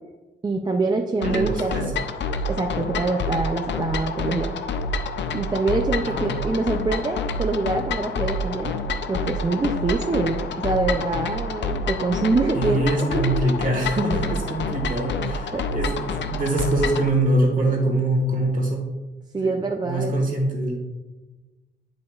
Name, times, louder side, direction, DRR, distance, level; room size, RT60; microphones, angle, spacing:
voice 1, 0.4-1.9 2.5-4.5 5.3-8.7 9.1-13.6 15.5-15.7 19.3-20.1, right 3 dB, 25° right, 3 dB, 0.4 m, -25 dB
sound 1, 1.2-17.1, left 3 dB, 80° left, 0.5 m, -28 dB
voice 2, 1.2-1.9 6.0-6.3 12.5-18.8 19.4-19.5 19.8-20.8, right 1 dB, 45° right, 1 dB, 1.4 m, -24 dB
9.6 x 5.2 x 2.3 m, 1.2 s
wide cardioid pair, 170°, 18 cm